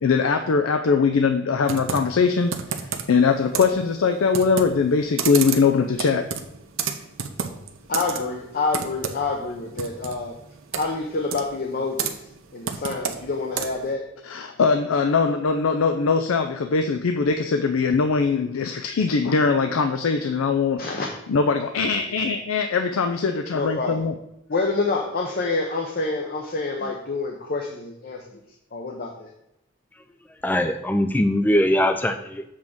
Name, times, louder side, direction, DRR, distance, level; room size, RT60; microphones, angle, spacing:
voice 1, 0.0-6.3 14.2-20.8 21.3-24.1, left 5 dB, 85° left, 7 dB, 0.5 m, -21 dB
Computer keyboard, 1.7-13.9, right 6 dB, 75° right, 0.7 m, -32 dB
voice 2, 7.9-10.4 10.7-12.2 12.5-14.0 20.8-21.1 22.2-22.3 23.5-24.0 24.5-28.4 28.7-29.3, left 3 dB, 45° left, 1 dB, 0.7 m, -27 dB
voice 3, 30.4-32.4, left 1 dB, 10° left, 7 dB, 0.3 m, -21 dB
7.4 x 3.6 x 5.9 m, 0.85 s
head